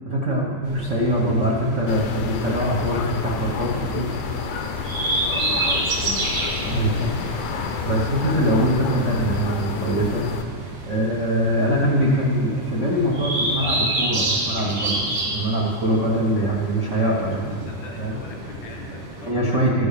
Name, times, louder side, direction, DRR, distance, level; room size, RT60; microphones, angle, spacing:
voice 1, 0.0-4.1 6.7-7.3 7.8-10.2 10.8-17.7 18.0-18.2 19.2-19.9, right 1 dB, 80° right, -3 dB, 0.6 m, -23 dB
sound 1, 0.6-19.3, right 1 dB, 55° right, 3.0 m, -30 dB
sound 2, 1.9-10.4, left 6 dB, 90° left, 2.3 m, -30 dB
voice 2, 5.3-6.7 17.2-19.6, left 2 dB, 70° left, -2 dB, 2.7 m, -37 dB
13.5 x 6.2 x 6.7 m, 2.1 s
omnidirectional pair, 3.6 m